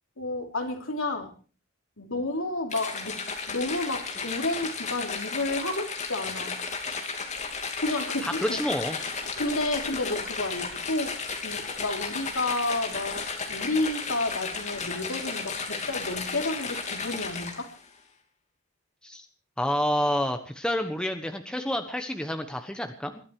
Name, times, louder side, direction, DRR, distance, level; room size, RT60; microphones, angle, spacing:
voice 1, 0.2-1.3 2.0-6.6 7.8-8.6 9.4-17.7, left 2 dB, 70° left, 3 dB, 3.3 m, -31 dB
sound 1, 2.7-17.8, left 4 dB, 30° left, 2.7 m, -34 dB
voice 2, 8.2-9.0 19.0-19.2 19.6-23.2, equal, 5° left, 6 dB, 1.2 m, -29 dB
22.0 x 12.5 x 4.7 m, 0.38 s
head